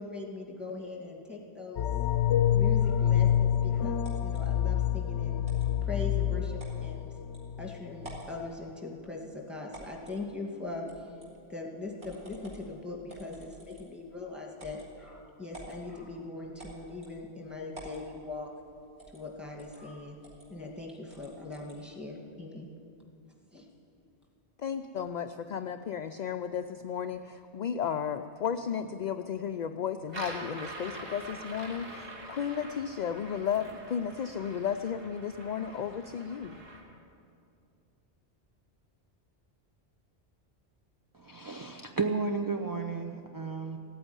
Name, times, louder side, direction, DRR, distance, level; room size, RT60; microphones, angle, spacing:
voice 1, 0.0-1.9 2.5-5.4 5.8-7.1 7.6-11.2 11.5-18.5 19.1-20.2 20.5-22.7 23.5-23.7, left 3 dB, ahead, -2 dB, 2.2 m, -41 dB
sound 1, 1.8-7.7 8.0-8.2, left 10 dB, 90° left, 0.9 m, -27 dB
sound 2, 4.0-4.4 5.4-5.7 6.6-6.8 7.3-7.4 8.0-8.3 9.7-10.2 10.9-11.3 12.0-12.7 13.1-14.0 14.6-14.9 15.5-15.8 16.6-17.2 17.7-18.0 19.0-19.2 19.6-19.8 20.2-20.5 21.1-21.8, right 2 dB, 90° right, 3.5 m, -49 dB
voice 2, 24.6-36.6, left 7 dB, 55° left, 8 dB, 0.5 m, -34 dB
sound 3, 30.1-36.8, right 1 dB, 55° right, 2.7 m, -45 dB
voice 3, 41.1-43.8, right 4 dB, 30° right, 4 dB, 0.4 m, -33 dB
16.0 x 9.1 x 9.6 m, 2.5 s
omnidirectional pair, 1.1 m